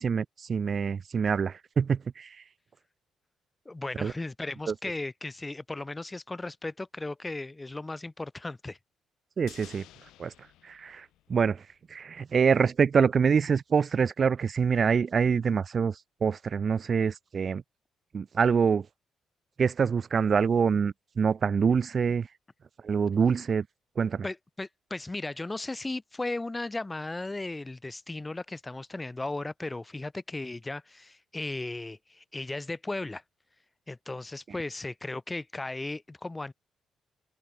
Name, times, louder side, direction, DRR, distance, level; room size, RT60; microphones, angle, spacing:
voice 1, 0.0-2.4 4.0-4.1 4.7-4.8 9.4-9.8 10.2-10.3 10.6-11.6 11.9-17.6 18.1-18.9 19.6-22.3 22.8-23.6 24.0-24.2, right 6 dB, 45° right, 0.4 m, -25 dB
voice 2, 3.6-8.8 24.2-33.2 33.9-36.5, left 2 dB, 15° left, 1.5 m, -36 dB
sound 1, 9.5-11.9 12.1-12.2, left 14 dB, 90° left, 2.4 m, -53 dB
cardioid pair, 90°, 0 cm